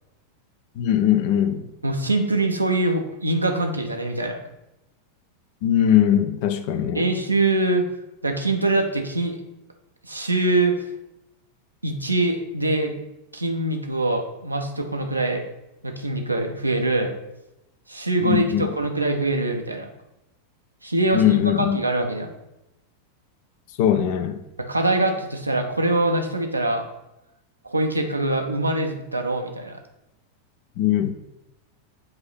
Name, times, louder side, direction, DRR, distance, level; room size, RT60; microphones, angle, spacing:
voice 1, 0.8-1.6 5.6-7.1 18.2-18.7 21.1-21.8 23.8-24.4 30.8-31.1, left 10 dB, 50° left, 10 dB, 0.6 m, -20 dB
voice 2, 1.8-4.4 6.9-7.9 8.2-9.4 10.0-10.8 11.8-12.9 13.3-15.4 15.8-17.1 17.9-19.9 20.8-22.3 24.7-26.8 27.6-29.8, right 2 dB, 85° right, 4 dB, 0.8 m, -23 dB
7.8 x 2.9 x 5.6 m, 0.91 s
figure-of-eight pair, 90°, 0 cm